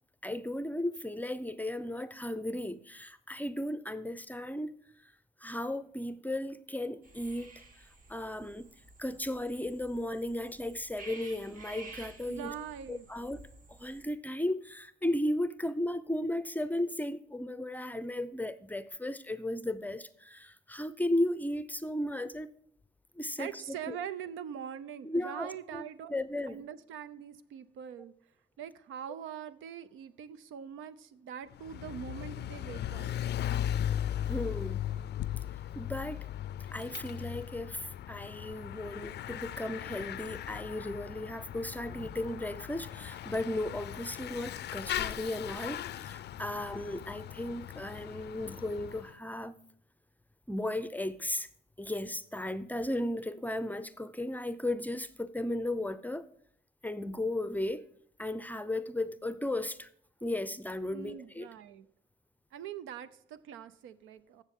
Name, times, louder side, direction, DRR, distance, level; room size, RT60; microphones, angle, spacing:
voice 1, 0.2-4.7 5.0-5.1 5.4-7.8 8.1-8.7 9.0-12.5 12.9-13.4 13.7-22.5 23.2-23.6 23.9-24.0 25.0-25.8 26.1-26.6 34.3-34.8 35.8-36.3 36.7-49.6 50.5-51.5 51.8-56.3 56.8-57.9 58.2-59.9 60.2-61.5, left 1 dB, 10° left, 0.5 m, -35 dB
sound 1, 7.0-14.0, right 3 dB, 40° right, 1.7 m, -52 dB
voice 2, 12.3-13.1 23.4-28.1 28.6-33.1 60.9-61.9 62.5-64.4, right 8 dB, 85° right, 0.7 m, -43 dB
Bicycle / Mechanisms, 31.5-49.1, left 11 dB, 60° left, 0.4 m, -38 dB
14.5 x 6.6 x 3.6 m
cardioid pair, 90°, 20 cm